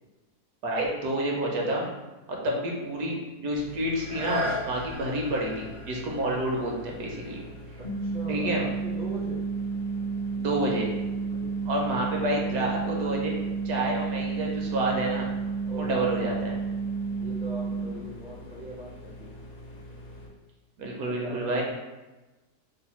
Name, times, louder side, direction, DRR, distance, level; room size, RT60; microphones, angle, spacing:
voice 1, 0.6-1.9 2.3-7.4 8.3-8.6 10.4-10.9 11.7-13.3 13.6-15.3 15.8-16.6 20.8-21.6, right 1 dB, 70° right, -1 dB, 1.2 m, -29 dB
voice 2, 2.3-2.7 5.0-5.3 7.8-9.4 11.2-11.6 12.1-12.8 15.6-16.0 17.2-19.3 21.2-21.6, right 1 dB, 45° right, -7 dB, 0.5 m, -41 dB
sound 1, 3.5-20.3, left 1 dB, 60° left, 0.8 m, -45 dB
sound 2, 3.9-9.6 10.2-10.3, left 1 dB, 75° left, 1.2 m, -38 dB
sound 3, 7.8-17.8, right 5 dB, 40° left, 0.5 m, -31 dB
3.2 x 2.2 x 4.1 m, 1.1 s
omnidirectional pair, 1.7 m